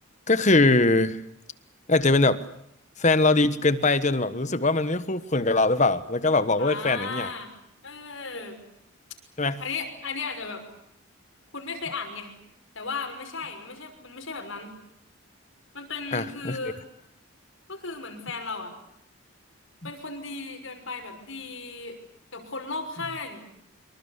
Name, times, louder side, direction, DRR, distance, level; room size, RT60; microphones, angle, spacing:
voice 1, 0.3-1.2 1.9-2.4 3.0-7.3 9.4-9.6 16.1-16.6, left 2 dB, 35° left, 13 dB, 1.3 m, -22 dB
voice 2, 6.6-7.5 7.8-8.6 9.6-10.6 11.5-12.3 12.7-14.7 15.7-16.8 17.7-18.7 19.8-22.0 22.3-23.4, left 4 dB, 65° left, 5 dB, 6.0 m, -35 dB
26.0 x 24.0 x 8.3 m, 0.77 s
head